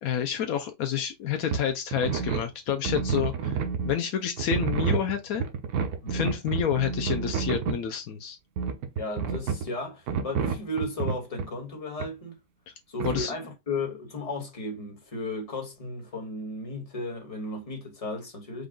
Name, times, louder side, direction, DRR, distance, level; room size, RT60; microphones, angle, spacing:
voice 1, 0.0-5.5 6.1-8.4 13.0-13.3, left 8 dB, 75° left, 1.1 m, -29 dB
sound 1, 1.5-1.7 1.9-4.0 4.4-7.8 8.6-9.7 10.1-11.5 12.0-12.1 13.0-13.3, right 6 dB, 90° right, 1.2 m, -29 dB
voice 2, 6.0-6.3 9.0-12.3 12.9-18.7, left 2 dB, 25° left, 1.4 m, -35 dB
5.2 x 2.3 x 3.7 m
omnidirectional pair, 1.5 m